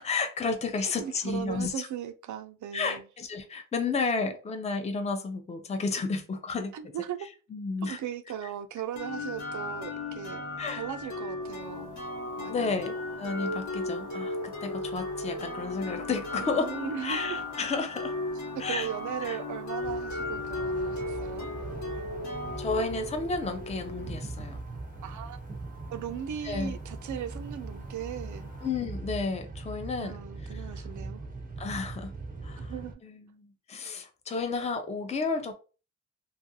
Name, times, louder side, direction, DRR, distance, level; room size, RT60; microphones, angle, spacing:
voice 1, 0.0-1.9 2.7-6.7 7.5-8.0 10.6-10.8 12.5-16.7 17.0-18.2 18.6-18.9 19.2-19.4 22.6-24.6 26.4-26.7 28.6-30.2 30.5-30.8 31.6-32.1 32.4-32.7 33.0-35.5, left 4 dB, 25° left, 0.4 m, -32 dB
voice 2, 1.0-3.0 6.7-7.2 7.8-10.4 10.7-12.0 12.4-12.8 16.4-17.4 18.5-21.5 25.0-25.4 25.9-28.5 30.0-31.2 32.6-33.0, right 9 dB, 85° right, 0.4 m, -38 dB
sound 1, 9.0-24.6, left 2 dB, 80° left, 1.0 m, -36 dB
sound 2, 11.4-28.7, left 1 dB, 55° left, 1.0 m, -54 dB
sound 3, 19.8-32.9, right 3 dB, 30° right, 0.5 m, -41 dB
2.7 x 2.4 x 2.7 m
cardioid pair, 95°, 29 cm